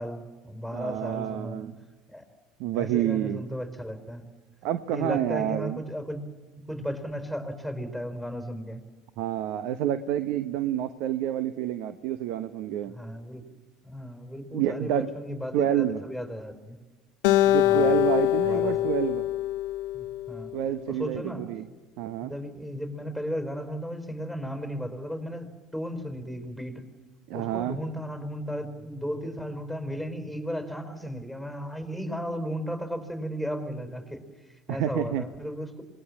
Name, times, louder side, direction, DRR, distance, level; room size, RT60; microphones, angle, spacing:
voice 1, 0.0-1.6 2.1-2.2 2.7-4.2 4.9-6.3 6.5-8.8 12.9-13.4 13.8-16.8 17.6-18.0 18.4-18.9 19.9-20.5 20.9-21.5 22.2-26.8 27.3-34.2 34.5-35.8, equal, 5° right, 7 dB, 4.6 m, -35 dB
voice 2, 0.7-1.7 2.6-3.4 4.6-5.8 9.2-12.9 14.5-15.1 15.5-16.0 17.5-19.3 20.5-21.7 22.0-22.3 27.3-27.8 34.7-35.2, right 11 dB, 70° right, 12 dB, 1.0 m, -28 dB
Acoustic guitar, 17.2-20.6, left 15 dB, 75° left, 1.0 m, -24 dB
26.5 x 20.5 x 7.2 m, 1.3 s
hypercardioid pair, 80°, 0 cm